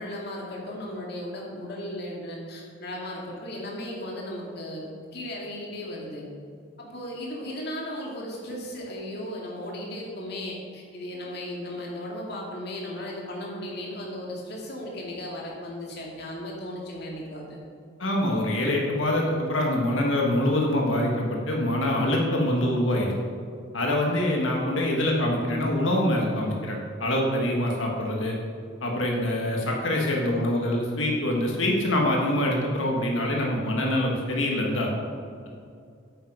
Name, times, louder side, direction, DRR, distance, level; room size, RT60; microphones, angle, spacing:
voice 1, 0.0-4.9 5.1-6.2 6.8-17.6, left 1 dB, 55° left, -2 dB, 2.3 m, -36 dB
voice 2, 18.0-23.1 23.7-28.4 28.8-34.9, left 1 dB, 75° left, -1 dB, 1.6 m, -25 dB
9.3 x 8.2 x 5.1 m, 2.3 s
head